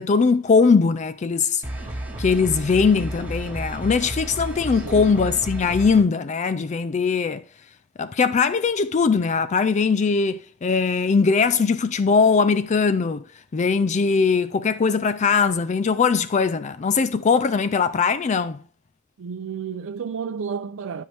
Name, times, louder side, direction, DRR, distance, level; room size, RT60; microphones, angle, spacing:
voice 1, 0.0-1.6 2.2-7.4 8.0-13.2 13.5-18.6, left 5 dB, 35° left, 0.4 m, -20 dB
sound 1, 1.6-6.0, right 1 dB, 10° right, 2.1 m, -32 dB
voice 2, 4.7-5.2 19.2-21.0, right 6 dB, 75° right, 0.4 m, -31 dB
12.5 x 5.6 x 3.4 m
head